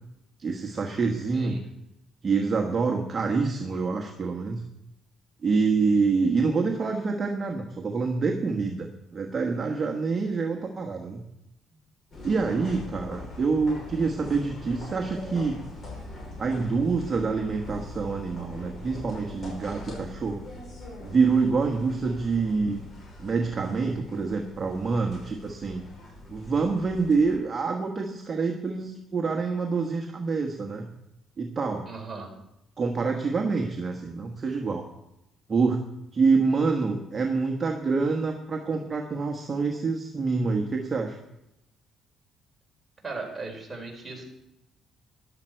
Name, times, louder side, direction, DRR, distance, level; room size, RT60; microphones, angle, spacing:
voice 1, 0.4-1.6 2.2-4.6 5.4-11.2 12.2-15.6 16.4-20.4 21.0-22.8 23.2-25.8 26.3-30.9 31.4-31.9 32.8-34.8 35.5-35.8 36.1-41.2, right 4 dB, 30° right, 1 dB, 1.3 m, -26 dB
sound 1, 12.1-27.4, left 1 dB, 40° left, 5.4 m, -42 dB
voice 2, 31.9-32.3 43.0-44.2, right 3 dB, 15° right, -1 dB, 4.0 m, -37 dB
14.0 x 11.0 x 4.6 m, 0.87 s
cardioid pair, 120°, 0 cm